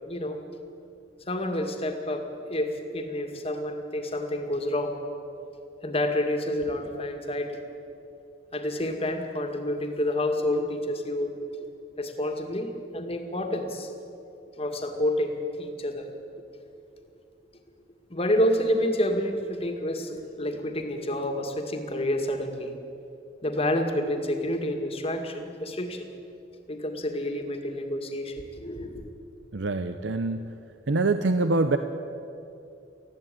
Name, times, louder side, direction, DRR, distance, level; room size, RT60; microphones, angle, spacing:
voice 1, 0.1-0.4 1.3-2.2 2.5-5.0 5.8-7.6 8.5-11.3 12.0-13.9 14.6-16.1 18.1-22.7 23.4-26.1 26.7-29.0, left 1 dB, 35° left, 4 dB, 2.1 m, -29 dB
voice 2, 29.5-30.5 30.9-31.8, right 3 dB, 90° right, 9 dB, 0.8 m, -25 dB
20.0 x 14.5 x 9.2 m, 2.7 s
head